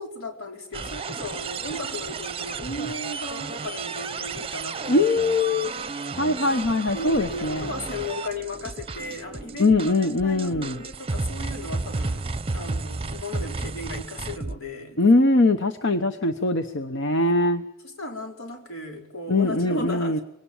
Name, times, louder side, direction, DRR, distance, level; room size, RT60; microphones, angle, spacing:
voice 1, 0.0-5.1 5.4-5.7 6.5-6.6 6.9-9.7 10.0-15.0 17.8-20.2, left 2 dB, 85° left, 3 dB, 4.7 m, -36 dB
sound 1, 0.7-14.6, right 4 dB, 25° right, 0.7 m, -33 dB
voice 2, 4.9-5.7 6.2-7.7 9.6-10.8 15.0-17.6 19.3-20.2, left 2 dB, 60° left, 8 dB, 1.0 m, -21 dB
22.5 x 18.5 x 7.3 m, 0.84 s
head